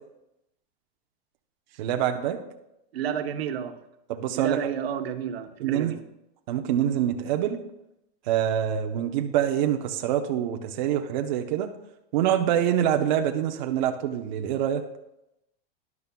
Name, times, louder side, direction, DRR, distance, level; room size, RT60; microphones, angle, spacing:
voice 1, 1.8-2.4 4.1-4.6 5.6-6.0 6.5-7.6 8.3-11.7 12.1-14.8, right 10 dB, 50° right, 4 dB, 0.7 m, -25 dB
voice 2, 2.9-3.8 4.3-6.0, right 8 dB, 85° right, 7 dB, 1.0 m, -31 dB
12.5 x 11.0 x 2.3 m, 0.85 s
supercardioid pair, 175°, 30 cm